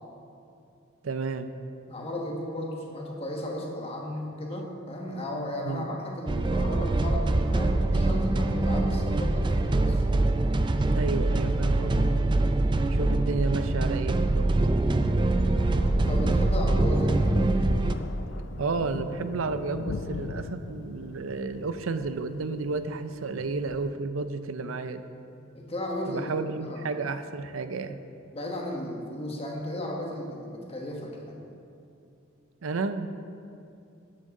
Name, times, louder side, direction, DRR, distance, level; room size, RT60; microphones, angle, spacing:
voice 1, 1.0-1.5 5.6-5.9 10.9-12.0 12.8-14.5 18.6-25.0 26.1-28.0 32.6-33.1, right 3 dB, 85° right, 10 dB, 0.6 m, -31 dB
voice 2, 1.9-10.0 15.5-17.5 25.5-26.3 26.6-26.9 28.3-31.4, left 1 dB, 30° left, 0 dB, 1.4 m, -35 dB
sound 1, 6.3-17.9, right 2 dB, 25° right, 0.4 m, -24 dB
Thunder, 16.9-23.9, left 3 dB, 60° left, 0.4 m, -40 dB
13.0 x 9.2 x 3.7 m, 2.6 s
head